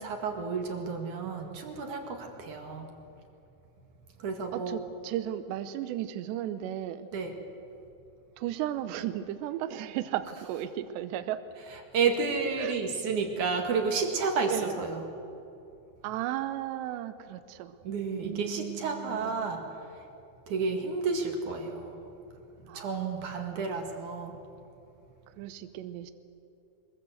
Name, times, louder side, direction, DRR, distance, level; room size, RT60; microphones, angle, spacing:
voice 1, 0.0-2.9 4.2-4.8 7.1-7.3 11.9-15.0 17.8-19.6 20.5-22.0 22.7-24.4, right 4 dB, 50° right, 3 dB, 2.9 m, -31 dB
voice 2, 4.5-7.1 8.4-11.4 12.6-12.7 14.5-14.8 16.0-17.8 18.2-19.3 22.7-23.2 25.4-26.1, right 12 dB, 80° right, 10 dB, 2.9 m, -35 dB
24.0 x 21.5 x 8.0 m, 2.7 s
omnidirectional pair, 5.2 m